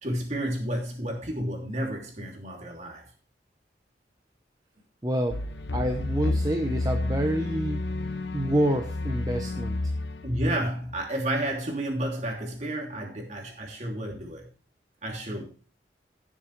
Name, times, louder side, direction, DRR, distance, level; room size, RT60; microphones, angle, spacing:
voice 1, 0.0-3.1 10.2-14.5 15.0-15.4, right 1 dB, 40° right, 3.0 m, -31 dB
voice 2, 5.0-5.4 5.7-7.9 8.3-9.8, right 1 dB, 20° right, 0.8 m, -27 dB
sound 1, 5.3-11.0, left 2 dB, 80° left, 0.9 m, -31 dB
17.0 x 7.4 x 3.3 m
head